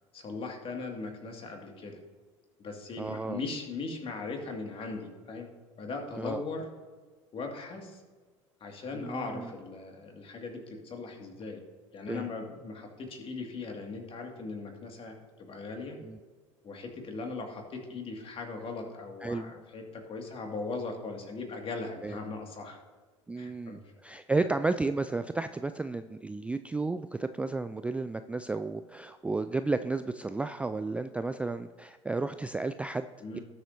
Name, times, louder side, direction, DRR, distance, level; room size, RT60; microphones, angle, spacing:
voice 1, 0.1-2.0 2.6-5.5 5.8-6.7 7.3-8.0 8.6-11.6 11.9-16.0 16.6-22.8 23.4-23.8 24.4-24.5 33.2-33.4, left 3 dB, 35° left, 2 dB, 2.2 m, -39 dB
voice 2, 3.0-3.4 6.2-6.4 8.9-9.5 12.1-12.3 16.0-16.2 19.2-19.5 22.0-22.2 23.3-33.1 33.3-33.4, right 3 dB, 10° right, 10 dB, 0.3 m, -33 dB
18.5 x 6.9 x 2.8 m, 1.5 s
figure-of-eight pair, 70°, 16 cm